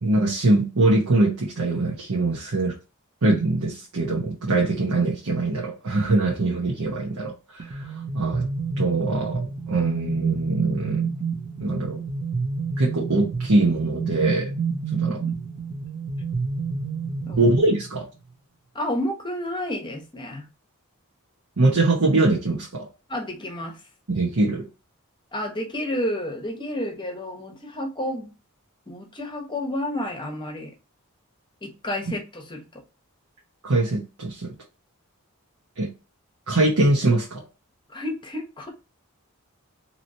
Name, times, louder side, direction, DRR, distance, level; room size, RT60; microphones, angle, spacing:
voice 1, 0.0-2.8 3.2-8.5 8.8-11.1 11.6-12.0 12.8-14.5 14.9-15.2 17.4-18.1 21.6-22.9 24.1-24.7 33.6-34.5 35.8-35.9 36.5-37.4, right 2 dB, 80° right, 0.9 m, -22 dB
sound 1, 7.6-18.1, right 5 dB, 50° right, 0.6 m, -29 dB
voice 2, 18.7-20.5 23.1-23.8 25.3-28.3 28.9-30.7 31.6-32.8 37.9-38.7, left 1 dB, 20° left, 0.9 m, -30 dB
3.0 x 2.9 x 2.6 m
head